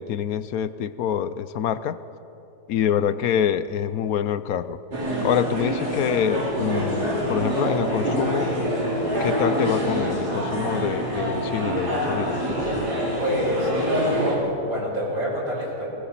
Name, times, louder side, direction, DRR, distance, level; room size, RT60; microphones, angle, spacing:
voice 1, 0.0-2.0 2.7-4.8 5.2-8.5 9.2-12.4, left 9 dB, 70° left, 14 dB, 1.0 m, -26 dB
sound 1, 4.9-14.3, equal, 75° right, 4.9 m, -25 dB
voice 2, 13.2-15.9, equal, 55° right, -6 dB, 6.7 m, -28 dB
21.0 x 19.0 x 7.4 m, 2.9 s
omnidirectional pair, 1.8 m